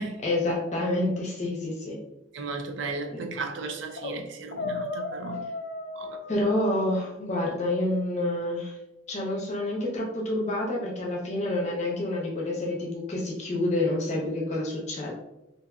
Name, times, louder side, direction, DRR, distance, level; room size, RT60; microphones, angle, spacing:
voice 1, 0.2-2.0 3.1-3.2 6.3-8.7 9.1-15.1, left 1 dB, 40° left, -2 dB, 0.7 m, -28 dB
voice 2, 2.3-5.4 5.9-6.2, right 3 dB, 80° right, 4 dB, 0.4 m, -35 dB
sound 1, 4.0-4.2 4.5-7.3, left 3 dB, 65° left, 0.3 m, -35 dB
2.6 x 2.5 x 2.3 m, 0.94 s
head